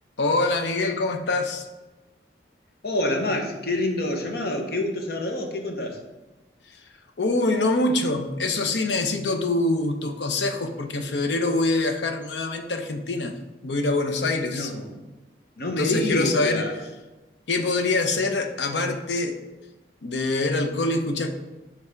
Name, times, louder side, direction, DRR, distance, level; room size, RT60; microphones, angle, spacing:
voice 1, 0.2-1.7 7.2-13.3 13.6-14.7 15.8-16.7 17.5-19.4 20.0-21.3, left 2 dB, 85° left, 6 dB, 0.7 m, -24 dB
voice 2, 2.8-6.0 14.5-15.0 15.6-16.8, left 1 dB, 60° left, 3 dB, 0.9 m, -27 dB
5.6 x 3.4 x 4.9 m, 1.1 s
head